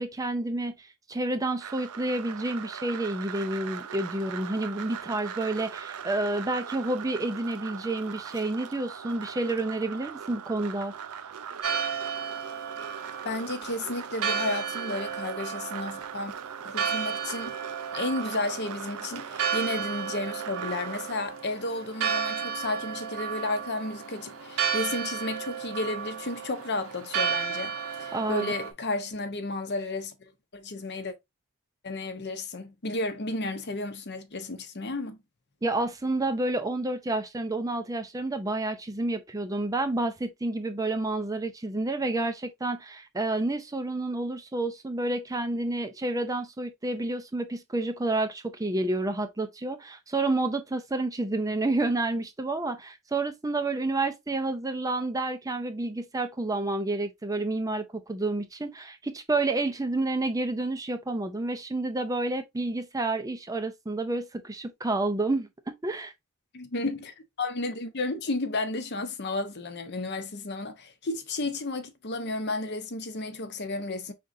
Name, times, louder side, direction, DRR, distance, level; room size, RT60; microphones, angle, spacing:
voice 1, 0.0-10.9 28.1-28.5 35.6-66.1, right 2 dB, 15° right, 0.5 m, -29 dB
sound 1, 1.6-21.2, right 8 dB, 85° right, 0.5 m, -40 dB
Church bell, 11.6-28.7, right 7 dB, 70° right, 1.0 m, -33 dB
voice 2, 13.2-16.3 16.6-17.6 17.9-30.1 30.5-31.1 31.8-35.2 66.5-74.1, left 2 dB, 50° left, 0.8 m, -32 dB
5.1 x 3.7 x 2.6 m
head